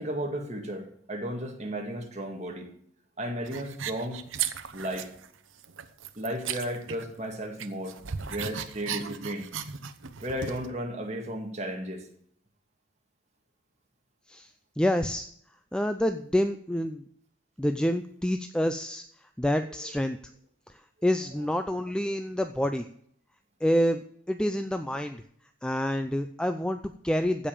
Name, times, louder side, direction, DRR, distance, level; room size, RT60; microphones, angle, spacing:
voice 1, 0.0-2.7 3.2-4.2 4.7-5.1 6.2-8.0 8.3-9.5 10.2-12.1, right 1 dB, 35° right, 3 dB, 2.0 m, -34 dB
sound 1, 3.5-5.3 5.6-7.3 7.6-10.7, right 8 dB, 75° right, 0.8 m, -36 dB
voice 2, 14.8-15.3 15.7-17.0 17.6-19.0 19.4-20.2 20.7-22.9 23.6-24.0 24.3-25.2 25.6-27.5, equal, 5° left, 8 dB, 0.4 m, -27 dB
15.5 x 5.2 x 7.3 m, 0.65 s
head